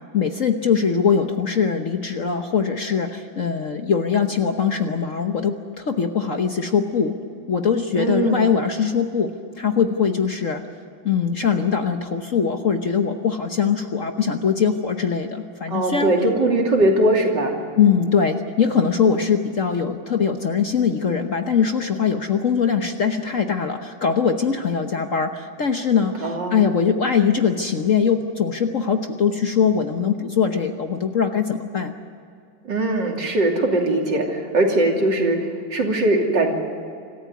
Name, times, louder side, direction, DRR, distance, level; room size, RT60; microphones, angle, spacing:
voice 1, 0.1-7.2 7.5-9.3 9.6-10.6 11.0-16.1 17.8-31.9, left 6 dB, 50° left, 6 dB, 1.2 m, -21 dB
voice 2, 7.9-8.5 15.7-17.5 26.2-26.6 32.7-35.4 35.7-36.5, right 2 dB, 60° right, 1 dB, 3.5 m, -20 dB
26.0 x 14.0 x 9.5 m, 2.4 s
omnidirectional pair, 2.1 m